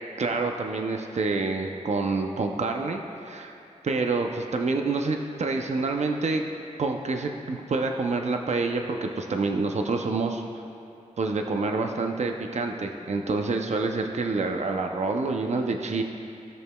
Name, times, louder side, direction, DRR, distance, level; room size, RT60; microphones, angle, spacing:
voice 1, 0.2-3.5 3.8-6.5 6.8-10.4 11.2-16.0, right 3 dB, 60° right, 3 dB, 0.6 m, -27 dB
16.5 x 6.3 x 2.3 m, 2.7 s
wide cardioid pair, 75°, 13 cm